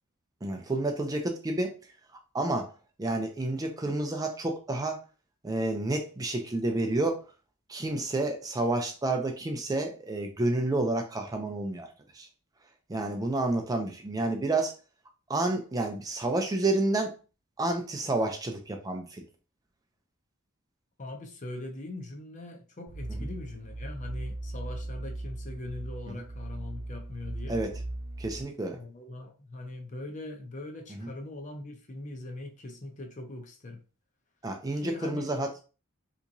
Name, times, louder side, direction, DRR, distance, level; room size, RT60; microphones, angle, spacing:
voice 1, 0.4-1.7 2.3-2.7 3.0-5.0 5.4-7.2 7.7-11.9 12.1-12.3 12.9-14.7 15.3-17.1 17.6-19.2 27.5-27.7 28.2-28.8 30.9-31.1 34.4-35.6, right 2 dB, 15° right, 4 dB, 0.4 m, -29 dB
voice 2, 21.0-27.6 28.7-33.8 34.7-35.3, left 2 dB, 35° left, 4 dB, 0.6 m, -41 dB
sound 1, 22.9-28.4, right 1 dB, 45° right, 0.8 m, -38 dB
3.4 x 2.9 x 2.6 m, 0.34 s
head